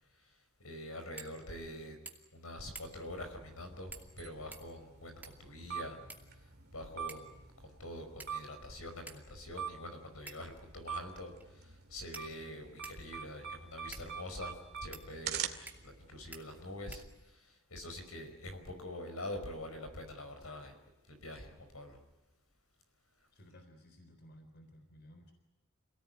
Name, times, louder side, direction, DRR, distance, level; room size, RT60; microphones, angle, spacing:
voice 1, 0.6-2.0 2.3-6.0 6.3-6.4 6.7-14.5 14.8-15.4 15.8-20.7 21.1-22.0, left 1 dB, 75° left, 6 dB, 5.1 m, -45 dB
sound 1, 1.2-1.4 1.7-1.8 2.1-2.4 2.8-3.1 3.9-4.2 4.5-5.5 6.1-6.7 7.1-7.4 8.2-8.6 9.1-9.2 10.3-10.6 11.4-11.5 12.1-13.1 13.9-14.1 14.9-15.1 15.7-16.0 16.3-16.4 16.9-17.5, right 3 dB, 10° right, 2.5 m, -51 dB
sound 2, 3.1-17.0, right 7 dB, 50° right, 2.4 m, -45 dB
voice 2, 23.3-25.3, equal, 50° left, 5 dB, 3.9 m, -57 dB
28.0 x 18.0 x 9.5 m, 1.0 s
head